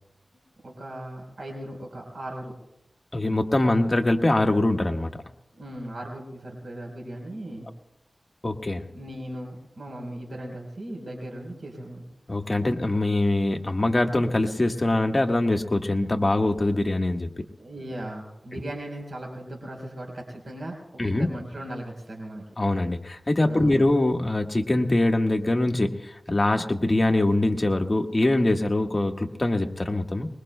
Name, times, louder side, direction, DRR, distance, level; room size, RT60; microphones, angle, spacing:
voice 1, 0.6-2.5 5.5-7.7 8.9-12.1 17.6-22.4 23.5-23.8, right 1 dB, 70° right, 1 dB, 4.1 m, -37 dB
voice 2, 3.1-5.1 8.4-8.8 12.3-17.3 21.0-21.3 22.6-30.3, left 2 dB, 40° left, 3 dB, 1.4 m, -23 dB
24.0 x 21.5 x 2.2 m, 0.84 s
wide cardioid pair, 55°, 0 cm